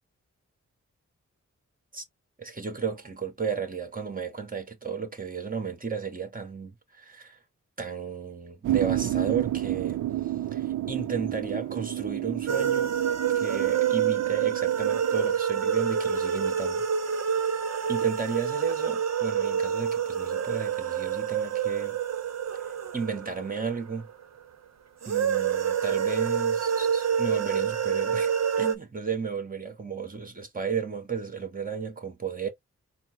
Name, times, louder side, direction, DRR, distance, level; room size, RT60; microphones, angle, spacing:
voice 1, 2.4-7.4 7.8-10.0 10.5-12.9 13.3-16.8 17.9-22.0 22.9-24.1 25.0-28.3 28.6-32.5, right 6 dB, 30° right, 1.6 m, -33 dB
sound 1, 8.6-15.2, right 14 dB, 90° right, 0.5 m, -30 dB
sound 2, 12.5-24.2 25.0-28.7, right 8 dB, 60° right, 0.9 m, -27 dB
4.2 x 2.1 x 4.1 m
cardioid pair, 55°, 30 cm